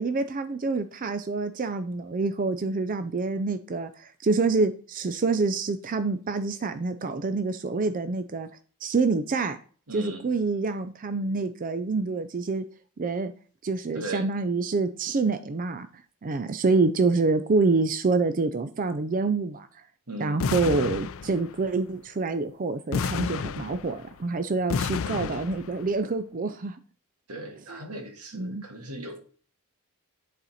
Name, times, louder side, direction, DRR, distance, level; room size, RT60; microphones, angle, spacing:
voice 1, 0.0-8.5 8.8-9.6 9.9-12.6 13.0-13.3 13.6-15.9 16.2-19.7 20.2-26.8 27.7-27.8 28.3-28.6, right 3 dB, 40° right, 0.4 m, -27 dB
voice 2, 9.9-10.3 13.9-14.3 20.1-20.4 27.3-29.2, right 1 dB, 90° right, 1.9 m, -37 dB
sound 1, 20.4-21.7 22.9-24.2 24.7-25.8, left 5 dB, 60° left, 0.4 m, -30 dB
10.5 x 4.2 x 4.2 m
head